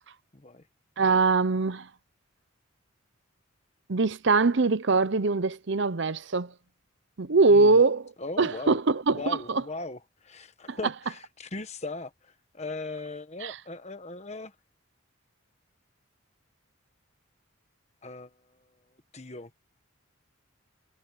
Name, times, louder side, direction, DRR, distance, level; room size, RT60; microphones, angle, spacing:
voice 1, 0.3-0.6 7.5-7.8 8.2-8.8 9.1-14.5 18.0-18.3 19.1-19.5, left 2 dB, 30° left, 1.3 m, -38 dB
voice 2, 1.0-1.9 3.9-6.5 7.2-9.6 10.7-10.8 13.4-13.6, right 3 dB, 55° right, 0.7 m, -23 dB
head